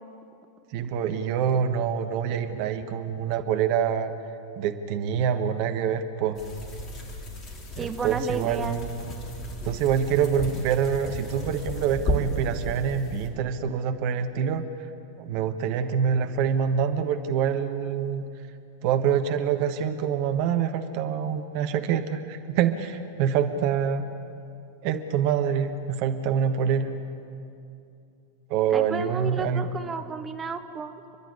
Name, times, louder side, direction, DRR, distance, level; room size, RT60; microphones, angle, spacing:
voice 1, 0.7-4.1 4.6-6.4 7.8-9.1 9.6-14.7 15.2-18.2 18.8-24.1 24.8-26.9 28.5-29.7, right 8 dB, 45° right, 8 dB, 1.3 m, -26 dB
sound 1, 6.3-13.3, left 1 dB, 30° left, 3.4 m, -34 dB
voice 2, 7.8-8.8 28.7-31.0, right 5 dB, 20° right, 7 dB, 1.2 m, -32 dB
29.0 x 11.5 x 9.9 m, 2.6 s
figure-of-eight pair, 90°, 0 cm